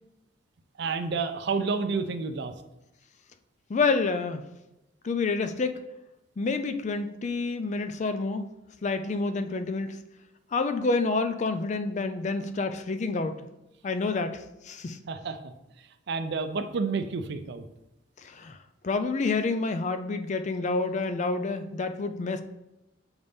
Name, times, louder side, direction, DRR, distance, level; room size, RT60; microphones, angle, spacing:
voice 1, 0.8-2.5 15.1-15.5 16.1-17.6, right 4 dB, 60° right, 9 dB, 0.5 m, -30 dB
voice 2, 3.7-4.4 5.0-5.8 6.4-8.5 8.8-10.0 10.5-13.5 13.8-15.0 18.2-18.6 18.8-22.4, left 3 dB, 40° left, 9 dB, 0.4 m, -28 dB
7.0 x 3.9 x 3.5 m, 0.93 s
head